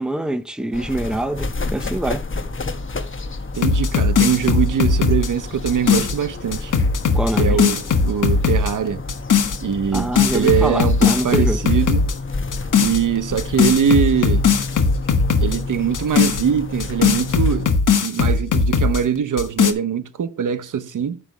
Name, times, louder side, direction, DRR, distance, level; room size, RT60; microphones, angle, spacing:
voice 1, 0.0-2.2 7.1-7.6 9.9-11.6, right 1 dB, ahead, 0.7 m, -24 dB
sound 1, 0.7-17.7, left 3 dB, 40° left, 1.1 m, -31 dB
voice 2, 3.5-6.7 7.3-9.0 9.6-12.1 12.8-14.5 15.3-17.7 18.0-21.2, right 8 dB, 80° right, 0.8 m, -22 dB
sound 2, 3.6-6.2 6.5-8.7 9.1-9.6 9.9-12.2 12.5-13.0 13.4-15.6 15.9-19.0 19.4-19.7, left 5 dB, 90° left, 1.2 m, -18 dB
9.2 x 3.3 x 6.1 m
wide cardioid pair, 120°, 31 cm